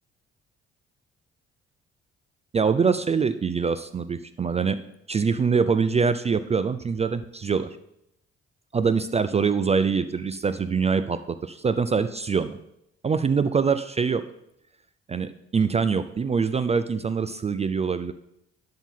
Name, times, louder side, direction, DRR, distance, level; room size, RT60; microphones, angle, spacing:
voice 1, 2.5-4.8 5.1-7.7 8.7-12.6 13.0-14.2 15.1-18.1, right 5 dB, 20° right, 13 dB, 0.4 m, -24 dB
11.0 x 5.8 x 3.7 m, 0.80 s
figure-of-eight pair, 45°, 34 cm